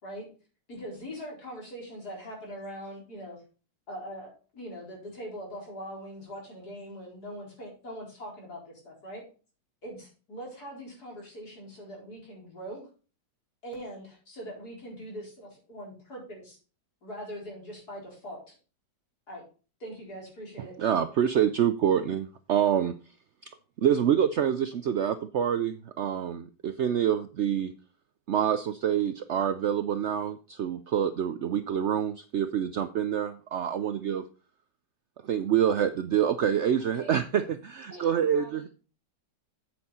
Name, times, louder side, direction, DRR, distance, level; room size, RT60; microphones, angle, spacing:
voice 1, 0.7-3.4 3.9-9.2 9.8-12.8 13.6-16.6 17.0-18.6 19.3-19.4 19.8-20.8, equal, 60° left, -2 dB, 4.9 m, -42 dB
voice 2, 20.6-22.9 23.8-27.7 28.3-34.2 35.2-37.2 37.8-38.7, right 9 dB, 75° right, 11 dB, 0.6 m, -26 dB
voice 3, 36.8-37.6 37.9-38.7, equal, 10° left, -2 dB, 5.3 m, -48 dB
8.7 x 8.4 x 4.2 m, 0.36 s
omnidirectional pair, 1.9 m